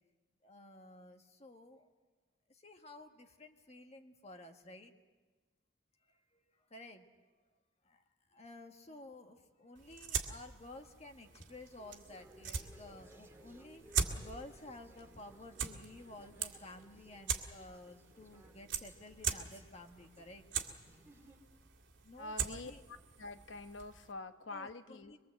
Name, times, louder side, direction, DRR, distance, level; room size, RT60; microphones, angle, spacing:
voice 1, 0.4-1.9 2.5-4.9 6.0-7.1 7.8-8.0 8.3-20.4 22.0-22.8 24.5-25.2, left 2 dB, 35° left, 4 dB, 1.5 m, -53 dB
sound 1, 9.7-24.1, right 6 dB, 75° right, 2.0 m, -42 dB
sound 2, 11.1-21.6, right 1 dB, 15° right, 1.8 m, -62 dB
voice 2, 22.2-22.7 23.2-25.1, left 2 dB, 75° left, 9 dB, 1.0 m, -46 dB
23.5 x 23.0 x 7.8 m, 1.3 s
head